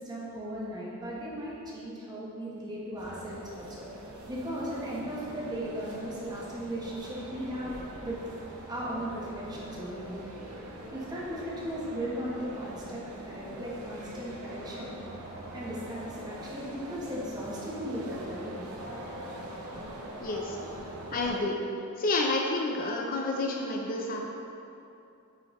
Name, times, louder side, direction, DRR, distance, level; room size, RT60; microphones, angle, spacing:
voice 1, 0.0-3.9 4.3-8.2 8.7-10.2 10.9-14.9 15.5-18.5, equal, 20° right, -6 dB, 1.1 m, -37 dB
sound 1, 3.0-21.4, right 1 dB, 75° right, 0.7 m, -43 dB
voice 2, 20.2-20.6 21.1-21.6 22.0-24.3, left 2 dB, 40° left, 0 dB, 0.4 m, -29 dB
9.3 x 3.3 x 3.1 m, 2.7 s
head